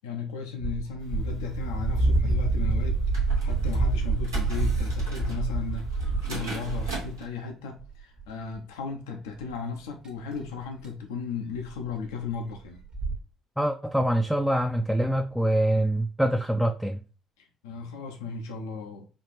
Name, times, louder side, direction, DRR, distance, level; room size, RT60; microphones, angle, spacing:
voice 1, 0.0-3.0 3.4-12.8 17.4-19.1, left 5 dB, 75° left, 3 dB, 0.5 m, -35 dB
sound 1, 0.6-7.1 7.8-8.3 8.5-8.6 9.4-9.5 10.5-10.6 10.8-10.9 11.6-11.8 12.0-12.1 12.3-12.4 12.8-13.2, right 3 dB, 35° right, 0.9 m, -27 dB
sound 2, 1.0-7.2, right 3 dB, 85° right, 0.8 m, -42 dB
voice 2, 13.6-17.0, right 1 dB, ahead, 4 dB, 0.4 m, -25 dB
4.2 x 2.5 x 3.0 m, 0.35 s
figure-of-eight pair, 50°, 2 cm